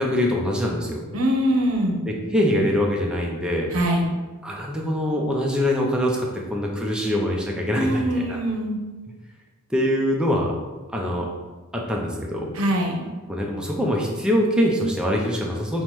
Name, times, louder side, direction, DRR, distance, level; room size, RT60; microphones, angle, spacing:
voice 1, 0.0-1.0 2.1-3.7 4.4-8.4 9.7-10.5 10.9-11.3 11.7-12.5 13.3-15.8, equal, 5° right, -1 dB, 0.4 m, -23 dB
voice 2, 1.1-2.0 3.7-4.1 7.7-8.8 12.5-13.1, equal, 80° right, 1 dB, 0.7 m, -23 dB
5.4 x 2.1 x 3.1 m, 1.3 s
head